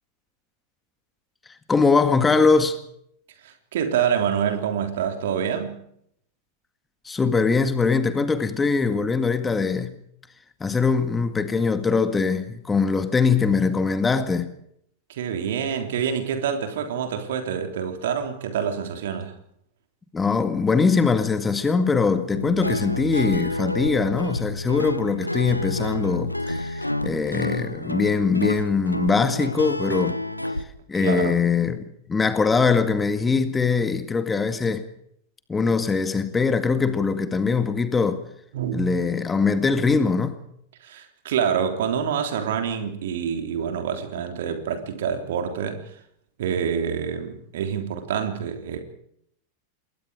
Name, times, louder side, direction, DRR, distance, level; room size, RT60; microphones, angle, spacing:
voice 1, 1.7-2.8 7.1-10.0 10.6-14.5 20.1-30.2 30.9-34.9 35.5-38.2 38.7-40.4, left 4 dB, 15° left, 1.9 m, -22 dB
voice 2, 3.4-5.8 15.1-19.3 30.9-31.4 38.5-38.8 40.8-46.0 46.4-48.8, right 7 dB, 55° right, 3.4 m, -27 dB
Guitar, 22.3-30.6, left 1 dB, 85° left, 1.0 m, -29 dB
28.0 x 21.0 x 5.0 m
figure-of-eight pair, 90°, 0 cm